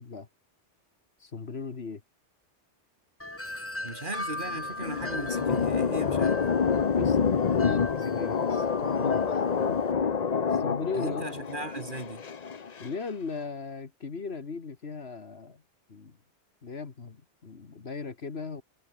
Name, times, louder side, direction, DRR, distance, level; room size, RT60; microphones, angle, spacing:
voice 1, 1.2-2.0 7.0-9.4 9.7-9.8 10.5-11.3 12.8-15.6 15.9-16.2 16.6-18.6, left 4 dB, 65° left, 1.9 m, -37 dB
Wind chime, 3.2-9.9, left 1 dB, 10° left, 1.3 m, -40 dB
voice 2, 3.8-6.4 11.0-12.2, right 2 dB, 45° right, 3.4 m, -37 dB
sound 1, 4.3-12.9, left 6 dB, 40° left, 0.9 m, -27 dB
omnidirectional pair, 1.2 m